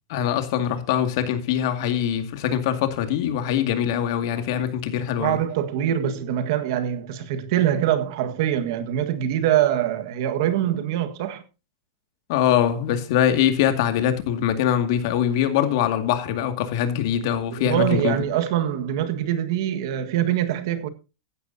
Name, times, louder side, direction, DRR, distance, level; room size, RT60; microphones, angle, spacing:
voice 1, 0.1-5.4 12.3-18.2, left 10 dB, 55° left, 2.2 m, -23 dB
voice 2, 5.2-11.4 17.5-20.9, right 11 dB, 60° right, 1.7 m, -24 dB
15.5 x 11.5 x 2.8 m
supercardioid pair, 165°, 3 cm